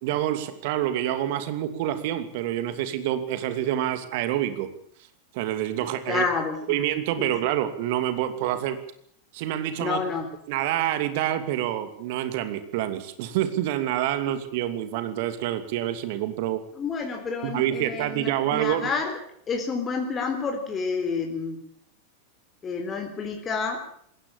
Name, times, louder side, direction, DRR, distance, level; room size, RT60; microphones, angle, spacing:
voice 1, 0.0-4.7 5.3-6.3 6.7-8.8 9.3-10.0 10.5-16.6 17.4-18.9, right 12 dB, 50° right, 11 dB, 2.7 m, -27 dB
voice 2, 6.1-6.8 7.2-7.3 9.8-10.3 16.8-19.2 19.5-21.6 22.6-23.8, left 5 dB, 20° left, 3 dB, 3.8 m, -29 dB
21.0 x 17.5 x 8.8 m, 0.65 s
figure-of-eight pair, 90°, 0 cm